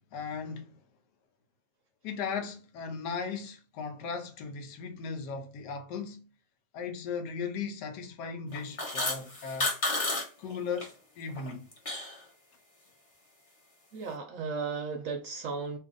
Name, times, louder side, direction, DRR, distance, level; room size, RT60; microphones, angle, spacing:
voice 1, 0.1-0.8 2.0-6.3 6.7-9.7 10.4-11.7, left 5 dB, 80° left, 1.3 m, -37 dB
sound 1, 8.5-10.3 10.5-10.9 11.3-12.2, left 2 dB, 30° left, 0.7 m, -31 dB
voice 2, 13.9-15.8, right 5 dB, 70° right, 0.8 m, -35 dB
2.8 x 2.7 x 3.6 m
omnidirectional pair, 1.8 m